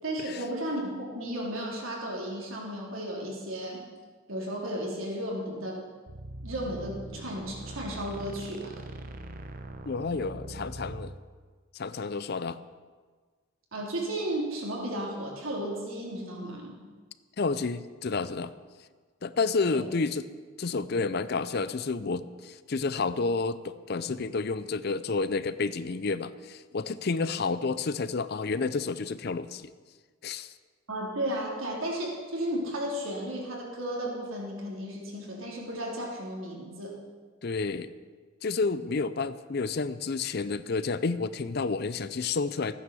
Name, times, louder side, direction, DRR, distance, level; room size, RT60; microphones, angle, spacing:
voice 1, 0.0-3.8 4.3-5.8 6.4-8.9 13.7-16.7 19.7-19.8 30.9-36.9, right 1 dB, 80° right, -3 dB, 3.5 m, -34 dB
sound 1, 6.1-11.2, right 1 dB, 45° right, 0.9 m, -41 dB
voice 2, 9.8-11.1 11.7-12.6 17.4-18.5 19.2-20.3 20.6-29.7 30.2-30.5 37.4-37.9 38.4-42.7, left 4 dB, 50° left, 14 dB, 0.5 m, -30 dB
14.0 x 9.6 x 7.0 m, 1.5 s
head